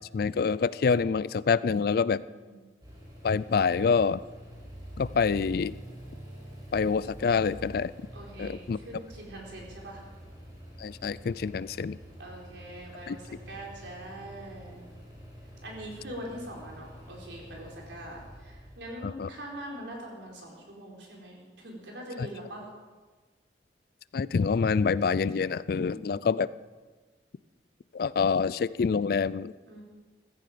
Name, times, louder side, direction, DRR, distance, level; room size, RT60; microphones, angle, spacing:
voice 1, 0.1-2.2 3.2-4.2 5.0-5.7 6.7-7.9 8.4-8.8 10.8-12.0 13.1-13.2 19.0-19.3 22.2-22.3 24.1-26.5 27.9-29.5, left 5 dB, 55° left, 18 dB, 0.3 m, -26 dB
voice 2, 2.2-2.6 8.1-10.0 12.2-14.8 15.6-22.7 25.8-26.4 29.7-29.8, right 1 dB, 85° right, -2 dB, 4.0 m, -43 dB
sound 1, 2.8-20.0, equal, 20° right, 4.6 m, -47 dB
15.0 x 14.0 x 5.0 m, 1.4 s
head